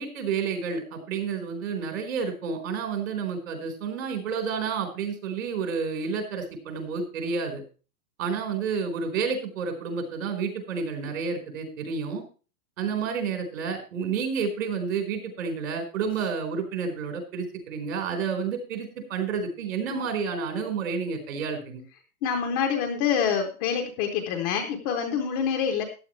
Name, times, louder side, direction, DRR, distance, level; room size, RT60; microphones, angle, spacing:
voice 1, 0.0-7.6 8.2-12.2 12.8-21.8, right 5 dB, 60° right, 5 dB, 4.5 m, -30 dB
voice 2, 22.2-25.8, left 7 dB, 15° left, 3 dB, 0.6 m, -26 dB
14.5 x 10.0 x 3.2 m, 0.35 s
supercardioid pair, 175°, 44 cm